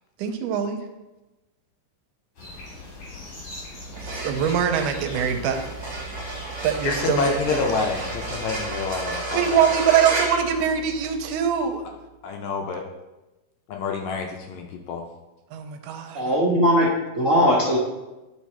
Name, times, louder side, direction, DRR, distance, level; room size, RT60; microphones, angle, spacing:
voice 1, 0.2-0.8 4.0-5.6 6.6-7.6 9.3-11.8 15.5-16.2, right 8 dB, 85° right, 6 dB, 2.2 m, -23 dB
sound 1, 2.4-8.7, left 2 dB, 55° left, 3.3 m, -41 dB
sound 2, 3.8-11.3, right 2 dB, 35° right, 1.2 m, -32 dB
voice 2, 6.8-9.7 12.2-12.9 13.7-15.1, left 5 dB, 75° left, 2 dB, 1.7 m, -28 dB
voice 3, 16.1-17.8, equal, 60° right, -6 dB, 0.8 m, -19 dB
10.5 x 4.1 x 4.3 m, 1.1 s
omnidirectional pair, 3.7 m